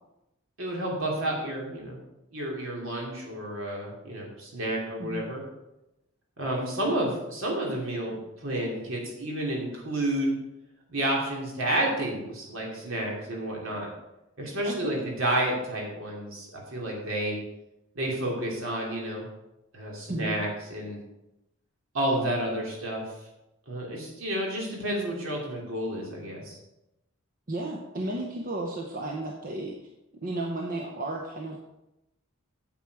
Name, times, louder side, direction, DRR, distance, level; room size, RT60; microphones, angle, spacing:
voice 1, 0.6-2.0 2.3-5.4 6.4-10.3 10.9-13.9 14.4-17.4 17.9-19.3 19.7-21.0 21.9-23.0 23.7-26.6, right 1 dB, 70° right, -2 dB, 2.9 m, -30 dB
voice 2, 14.6-15.0 20.1-20.4 27.5-29.7 30.2-31.6, right 2 dB, 40° right, 0 dB, 0.9 m, -33 dB
9.0 x 7.7 x 4.8 m, 0.93 s
head